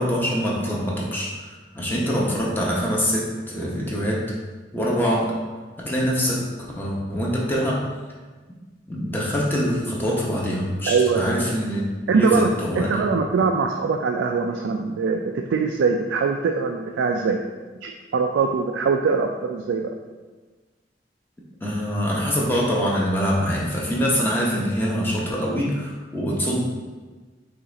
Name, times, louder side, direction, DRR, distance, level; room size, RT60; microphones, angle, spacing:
voice 1, 0.0-4.3 4.7-5.3 5.8-6.5 6.8-7.8 8.9-11.8 12.1-13.0 21.6-26.6, equal, 10° left, -4 dB, 0.8 m, -24 dB
voice 2, 10.9-11.2 12.1-12.5 12.8-17.4 17.8-19.9, right 5 dB, 90° right, 3 dB, 0.3 m, -22 dB
5.4 x 2.5 x 3.9 m, 1.3 s
head